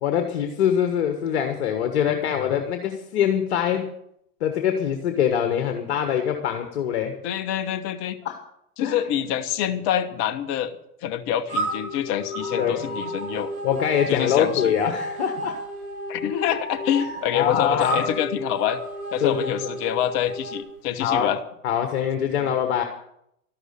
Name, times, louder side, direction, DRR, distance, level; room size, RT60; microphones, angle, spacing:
voice 1, 0.0-3.9 4.4-7.1 8.2-8.4 8.8-9.0 12.6-12.9 13.6-15.6 17.3-18.0 19.2-19.5 21.0-21.3 21.6-22.8, left 9 dB, 45° left, 6 dB, 1.5 m, -23 dB
voice 2, 7.2-8.2 8.8-10.7 11.0-13.5 14.1-14.7 16.1-18.8 19.1-21.4 22.3-22.5, left 10 dB, 25° left, 8 dB, 1.1 m, -26 dB
sound 1, 11.5-20.6, right 1 dB, 50° right, 6.0 m, -33 dB
sound 2, 12.3-13.9 14.2-14.3 14.8-19.2 19.7-19.8 20.6-20.7 20.9-21.0, equal, 75° right, 5.6 m, -39 dB
13.0 x 11.5 x 6.7 m, 0.77 s
figure-of-eight pair, 105°, 46 cm